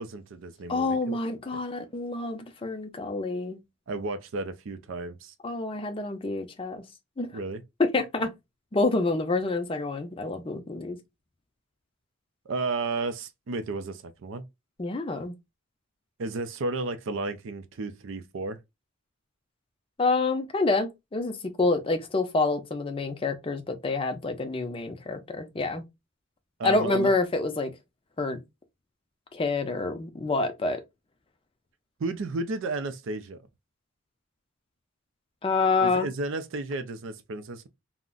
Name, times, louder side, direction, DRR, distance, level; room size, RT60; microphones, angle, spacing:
voice 1, 0.0-1.2 1.5-1.6 3.9-5.3 7.3-7.6 12.5-14.4 16.2-18.6 26.6-27.1 32.0-33.4 35.8-37.7, right 3 dB, 60° right, 0.4 m, -33 dB
voice 2, 0.7-3.6 5.4-6.8 7.2-7.3 7.8-8.3 8.7-11.0 14.8-15.4 20.0-25.8 26.6-27.7 28.2-28.4 29.3-30.8 35.4-36.1, left 3 dB, 25° left, 0.5 m, -27 dB
2.4 x 2.1 x 3.6 m
head